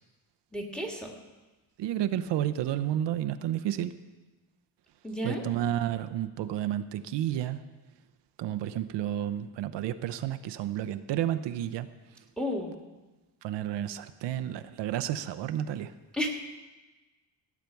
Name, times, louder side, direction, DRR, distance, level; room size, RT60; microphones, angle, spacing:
voice 1, 0.5-1.1 5.0-5.4 12.4-12.7 16.1-16.3, equal, ahead, 1 dB, 1.8 m, -32 dB
voice 2, 1.8-3.9 5.2-7.6 8.4-11.9 13.4-15.9, right 11 dB, 80° right, 10 dB, 0.7 m, -31 dB
17.0 x 8.3 x 4.6 m, 1.2 s
cardioid pair, 130°, 42 cm